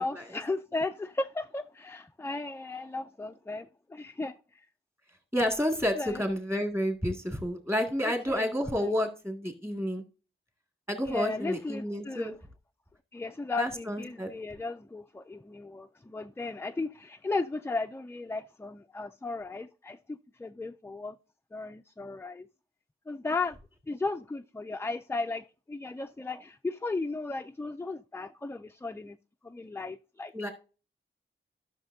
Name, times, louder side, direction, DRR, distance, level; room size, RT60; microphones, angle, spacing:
voice 1, 0.0-4.7 5.9-6.2 8.0-8.5 8.8-9.0 11.0-12.3 13.1-21.2 21.5-22.5 23.1-23.6 23.9-29.2 29.4-30.3, left 3 dB, 10° left, 0.3 m, -35 dB
voice 2, 5.3-10.0 10.9-12.3 13.6-14.3 30.3-30.5, equal, 15° right, 2.0 m, -30 dB
14.0 x 6.5 x 2.7 m
wide cardioid pair, 120°, 21 cm